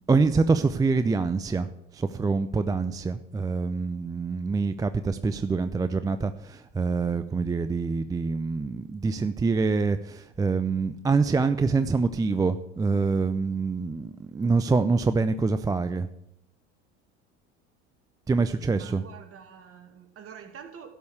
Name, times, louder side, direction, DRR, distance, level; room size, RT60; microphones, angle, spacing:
voice 1, 0.1-1.7 1.9-16.1 18.3-19.0, right 4 dB, 10° right, 11 dB, 0.4 m, -25 dB
voice 2, 18.7-20.9, right 7 dB, 40° right, 5 dB, 2.2 m, -46 dB
12.5 x 5.4 x 8.0 m, 0.81 s
hypercardioid pair, 85°, 34 cm